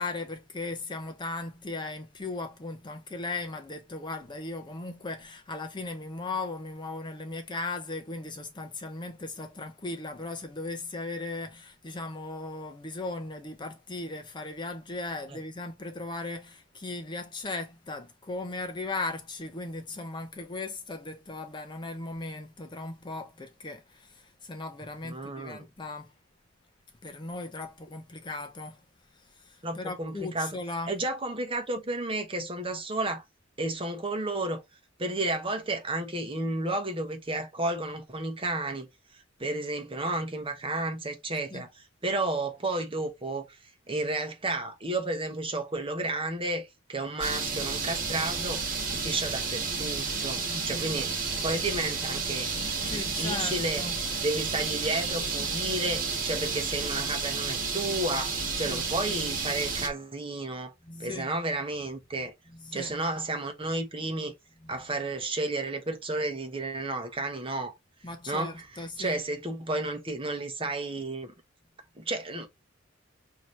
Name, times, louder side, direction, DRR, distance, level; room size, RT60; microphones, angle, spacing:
voice 1, 0.0-26.1 27.0-28.8 29.2-30.9 41.5-41.6 50.4-50.9 52.9-53.9 58.7-59.1 60.9-61.4 62.6-62.9 64.6-64.7 68.0-69.2, left 3 dB, 25° left, 0.6 m, -37 dB
voice 2, 25.0-25.7 29.6-30.6 30.9-33.2 33.6-34.6 35.0-38.9 39.4-43.5 43.9-51.1 51.4-52.5 52.8-53.8 54.2-60.7 61.0-62.3 62.7-64.3 64.7-67.7 68.3-71.3 72.0-72.5, right 2 dB, 25° right, 1.0 m, -32 dB
sound 1, 47.2-59.9, right 4 dB, 45° right, 1.4 m, -31 dB
5.7 x 2.8 x 3.2 m
head